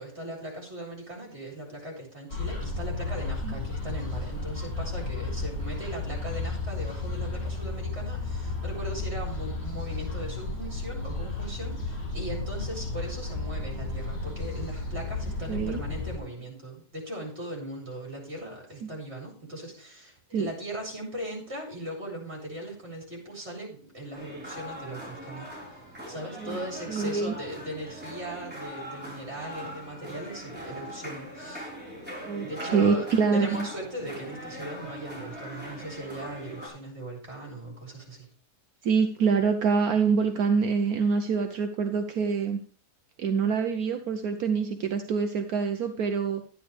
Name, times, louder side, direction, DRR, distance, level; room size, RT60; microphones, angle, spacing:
voice 1, 0.0-25.5 26.1-31.7 32.4-38.3, right 1 dB, 40° right, -1 dB, 4.3 m, -39 dB
sound 1, 2.3-16.2, left 3 dB, 40° left, 3.0 m, -33 dB
voice 2, 15.5-15.8 18.8-18.9 20.3-20.5 26.4-26.6 26.9-27.3 32.3-33.7 38.8-42.6 43.2-46.4, right 5 dB, 70° right, 7 dB, 1.1 m, -25 dB
sound 2, 24.1-36.7, equal, 5° right, 4.4 m, -41 dB
11.5 x 10.0 x 3.4 m, 0.40 s
omnidirectional pair, 1.8 m